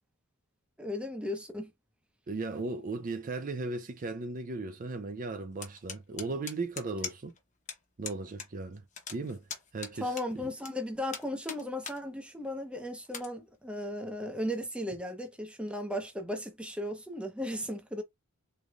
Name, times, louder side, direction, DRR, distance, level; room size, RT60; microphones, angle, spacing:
voice 1, 0.8-1.7 10.0-18.0, left 1 dB, 5° right, 0.7 m, -36 dB
voice 2, 2.3-7.3 8.0-8.8 9.1-9.4 9.7-10.5, right 3 dB, 40° right, 0.4 m, -36 dB
sound 1, 5.6-7.4 7.7-7.8 8.0-8.5 8.7-10.7 11.1-12.0 12.4-12.5 13.0-13.3, left 6 dB, 35° left, 0.9 m, -40 dB
3.7 x 3.2 x 2.3 m
head